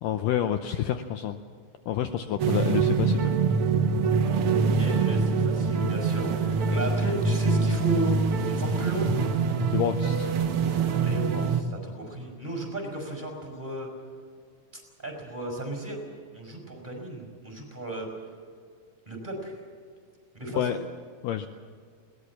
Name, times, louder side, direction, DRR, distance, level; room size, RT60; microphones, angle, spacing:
voice 1, 0.0-1.4 1.9-3.3 9.7-10.4 20.6-20.8 21.2-21.5, left 10 dB, 75° left, 8 dB, 2.2 m, -28 dB
sound 1, 2.4-11.6, right 5 dB, 90° right, 1.2 m, -24 dB
voice 2, 4.8-8.2 8.5-9.1 11.0-13.9 14.7-16.1 16.3-18.1 19.1-19.6 20.3-20.8, right 1 dB, 10° right, 1 dB, 5.1 m, -35 dB
21.5 x 19.0 x 7.2 m, 2.1 s
omnidirectional pair, 4.3 m